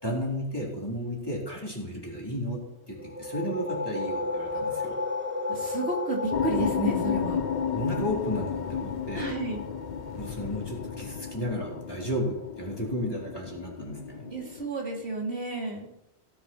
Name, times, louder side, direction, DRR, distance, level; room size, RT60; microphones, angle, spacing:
voice 1, 0.0-2.6 2.9-5.0 7.7-9.4 10.1-14.3, equal, 20° left, -3 dB, 4.1 m, -33 dB
sound 1, 3.0-12.4, left 3 dB, 10° right, 1.3 m, -35 dB
voice 2, 5.5-7.4 9.1-9.6 14.2-15.9, right 3 dB, 80° right, -1 dB, 3.3 m, -32 dB
sound 2, 6.3-14.7, left 8 dB, 55° left, 0.7 m, -33 dB
17.5 x 7.7 x 6.4 m, 0.83 s
omnidirectional pair, 1.1 m